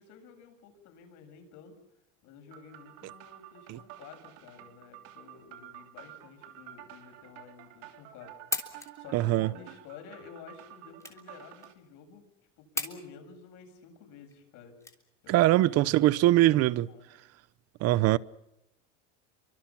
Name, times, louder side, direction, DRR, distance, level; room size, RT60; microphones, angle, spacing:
voice 1, 0.0-1.7 2.2-8.3 9.0-12.2 12.6-14.7 15.2-17.1, left 6 dB, 60° left, 7.6 m, -51 dB
sound 1, 2.5-11.7, right 13 dB, 75° right, 3.0 m, -50 dB
sound 2, 8.5-15.5, left 3 dB, 10° left, 3.4 m, -40 dB
voice 2, 9.1-9.5 15.3-16.9 17.8-18.2, right 15 dB, 50° right, 0.9 m, -22 dB
28.0 x 25.0 x 5.9 m
cardioid pair, 140°, 34 cm